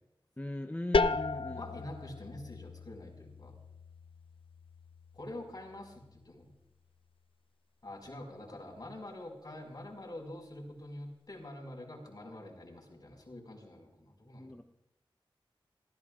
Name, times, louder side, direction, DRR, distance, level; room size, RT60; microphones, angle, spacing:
voice 1, 0.4-1.8 14.4-14.6, left 1 dB, 15° left, 5 dB, 0.7 m, -39 dB
sound 1, 0.9-6.5, left 3 dB, 70° left, 0.5 m, -35 dB
voice 2, 1.5-3.6 5.1-6.5 7.8-14.6, left 1 dB, 45° left, 1 dB, 5.0 m, -46 dB
28.0 x 15.0 x 2.4 m, 0.96 s
wide cardioid pair, 70°, 9 cm